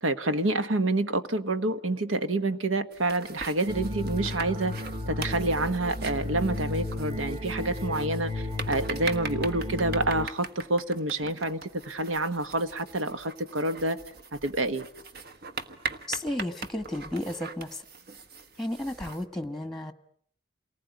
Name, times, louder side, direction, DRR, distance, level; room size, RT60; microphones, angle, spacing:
voice 1, 0.0-4.7 5.1-14.0 14.4-14.9, right 2 dB, 85° right, 1.3 m, -28 dB
sound 1, 2.9-19.2, right 4 dB, 55° right, 1.4 m, -41 dB
sound 2, 3.7-10.3, left 1 dB, 30° right, 1.9 m, -33 dB
voice 2, 16.1-17.8 18.6-19.9, left 1 dB, ahead, 1.3 m, -33 dB
28.5 x 19.5 x 9.4 m
head